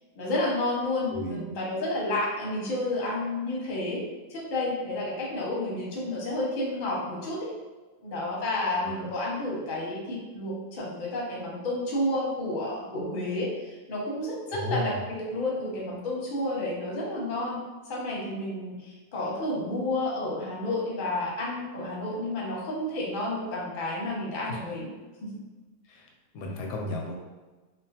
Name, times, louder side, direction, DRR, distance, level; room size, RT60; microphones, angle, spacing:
voice 1, 0.1-4.0 4.3-7.5 8.0-24.9 25.2-25.3, left 1 dB, 40° left, -4 dB, 0.7 m, -31 dB
voice 2, 1.1-1.5 8.8-9.1 14.5-15.0 24.5-24.6 25.9-26.0 26.3-27.2, left 1 dB, 80° left, 0 dB, 1.1 m, -34 dB
3.0 x 2.2 x 2.8 m, 1.2 s
omnidirectional pair, 1.7 m